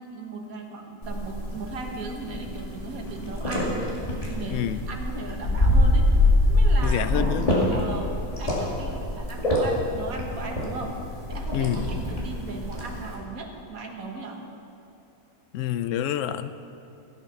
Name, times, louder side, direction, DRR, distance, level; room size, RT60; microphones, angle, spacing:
voice 1, 0.0-6.1 6.5-7.1 7.7-11.0 11.3-14.4, right 3 dB, 80° right, 2 dB, 1.8 m, -37 dB
sound 1, 1.0-13.1, left 1 dB, 25° left, 2.6 m, -25 dB
voice 2, 4.5-4.8 6.8-7.5 11.5-11.9 15.5-16.5, left 11 dB, 70° left, 12 dB, 0.9 m, -27 dB
16.0 x 8.9 x 5.8 m, 2.6 s
omnidirectional pair, 1.5 m